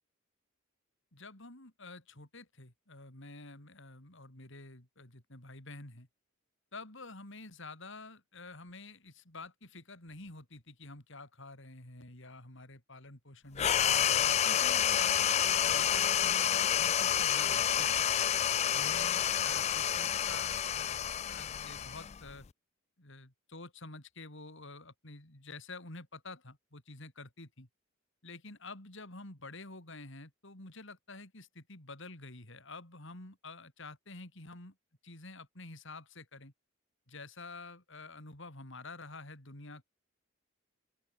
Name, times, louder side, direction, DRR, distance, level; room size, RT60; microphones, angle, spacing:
voice 1, 1.1-6.1 6.7-17.9 18.7-22.5 23.0-27.7 28.2-34.7 35.0-36.5 37.1-39.8, left 3 dB, 60° left, 4.7 m, -49 dB
sound 1, 13.6-22.5, left 9 dB, 30° left, 0.4 m, -29 dB
open air
head